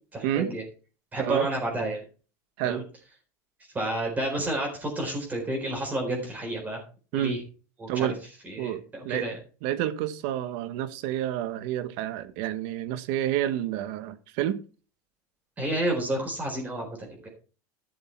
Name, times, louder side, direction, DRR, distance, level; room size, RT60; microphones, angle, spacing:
voice 1, 0.1-0.6 1.1-2.0 2.6-2.8 3.7-6.8 7.1-7.4 7.8-8.1 8.4-9.4 15.6-17.3, right 1 dB, 20° right, 4.0 m, -30 dB
voice 2, 1.2-1.5 2.6-2.8 7.1-7.4 7.9-8.2 8.6-9.3 9.6-14.6, right 12 dB, 60° right, 1.2 m, -29 dB
12.0 x 6.7 x 4.5 m
supercardioid pair, 125°, 9 cm